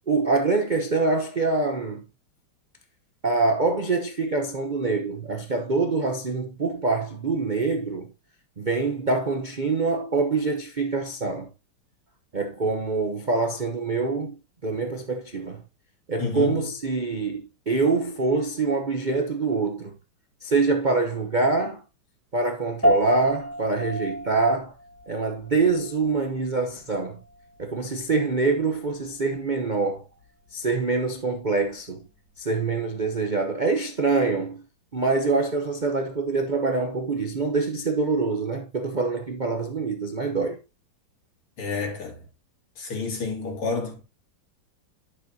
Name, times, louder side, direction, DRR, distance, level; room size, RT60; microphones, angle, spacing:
voice 1, 0.1-2.0 3.2-8.1 8.6-11.5 12.3-15.6 16.1-20.0 20.4-21.8 22.3-24.7 25.1-27.2 27.6-30.0 30.5-32.1 32.4-34.6 34.9-40.6, right 3 dB, 65° right, 0.4 m, -25 dB
voice 2, 16.2-16.6 41.6-42.2 42.8-44.0, left 4 dB, 75° left, 3.4 m, -29 dB
sound 1, 22.8-32.4, equal, 5° left, 2.1 m, -32 dB
11.0 x 6.3 x 2.8 m
omnidirectional pair, 2.4 m